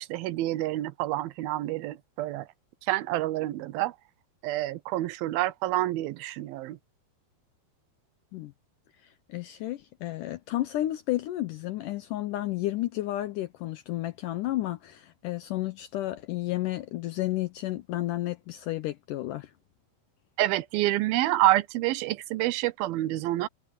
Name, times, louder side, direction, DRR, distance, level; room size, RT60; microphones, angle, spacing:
voice 1, 0.0-2.5 2.8-4.0 4.4-6.8 20.4-23.5, right 16 dB, 75° right, 2.4 m, -28 dB
voice 2, 9.3-19.5, left 15 dB, 90° left, 1.8 m, -32 dB
omnidirectional pair, 4.6 m